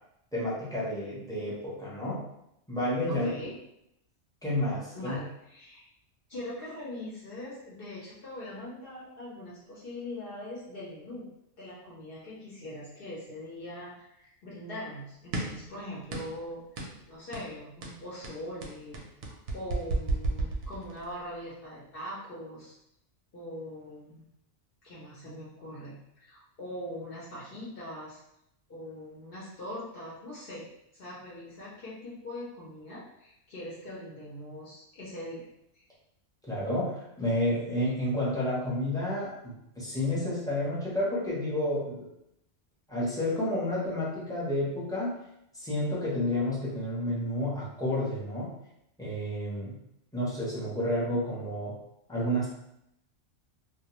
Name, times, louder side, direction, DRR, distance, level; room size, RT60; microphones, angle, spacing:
voice 1, 0.3-2.2 2.7-3.3 4.4-5.2 36.5-42.1 42.9-45.1 45.5-48.5 49.0-49.8 50.1-51.8 52.1-52.5, left 1 dB, 5° left, -8 dB, 0.5 m, -30 dB
voice 2, 3.1-3.5 4.9-5.8 6.3-11.3 11.6-22.7 23.3-24.2 24.8-28.2 28.7-35.4 35.7-35.8, left 1 dB, 55° left, -7 dB, 0.8 m, -42 dB
sound 1, 15.3-15.7 16.1-16.4 16.8-17.0 17.3-17.5 17.8-21.1, right 2 dB, 65° right, 0.7 m, -32 dB
2.3 x 2.1 x 2.9 m, 0.79 s
omnidirectional pair, 1.2 m